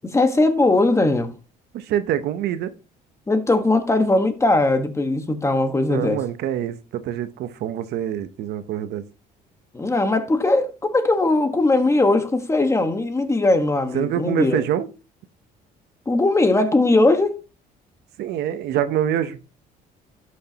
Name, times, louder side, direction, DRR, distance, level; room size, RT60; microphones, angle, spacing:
voice 1, 0.0-1.3 3.3-6.2 9.7-14.6 16.1-17.3, left 2 dB, 15° left, 1.4 m, -19 dB
voice 2, 1.7-2.7 5.9-9.1 13.9-14.9 18.2-19.4, right 10 dB, 75° right, 0.9 m, -25 dB
12.5 x 6.4 x 2.9 m
cardioid pair, 110°, 17 cm